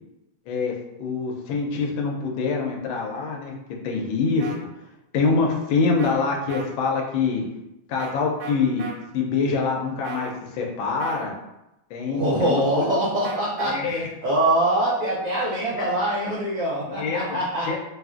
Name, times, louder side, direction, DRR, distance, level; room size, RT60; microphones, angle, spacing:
voice 1, 1.0-3.5 3.8-4.5 5.1-7.4 7.9-11.3 11.9-12.9 13.6-14.1 15.7-15.9 16.9-17.3 17.7-17.8, left 4 dB, 80° left, 0 dB, 1.3 m, -25 dB
sound 1, 4.4-4.6 6.0-6.1 6.5-6.7 8.0-8.1 8.4-8.9 10.0-10.3 11.0-11.3 13.2-13.7, right 6 dB, 90° right, 1.4 m, -35 dB
voice 2, 12.1-13.8 14.2-17.7, right 1 dB, 70° right, -6 dB, 0.7 m, -23 dB
3.4 x 2.4 x 2.4 m, 0.91 s
omnidirectional pair, 2.1 m